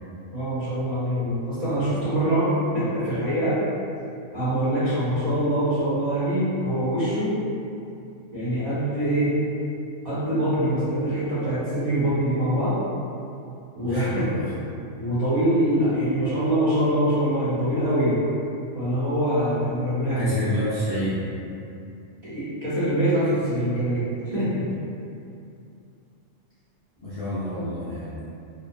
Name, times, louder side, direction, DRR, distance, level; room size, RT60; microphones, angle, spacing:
voice 1, 0.3-3.6 4.3-7.4 8.3-9.3 10.0-12.8 13.7-14.3 15.0-18.2 18.7-20.4 22.2-24.7, right 1 dB, 35° right, -13 dB, 0.9 m, -24 dB
voice 2, 13.7-14.4 20.2-21.2 27.0-28.2, equal, 55° left, -13 dB, 0.4 m, -29 dB
2.7 x 2.0 x 2.5 m, 2.6 s
omnidirectional pair, 1.3 m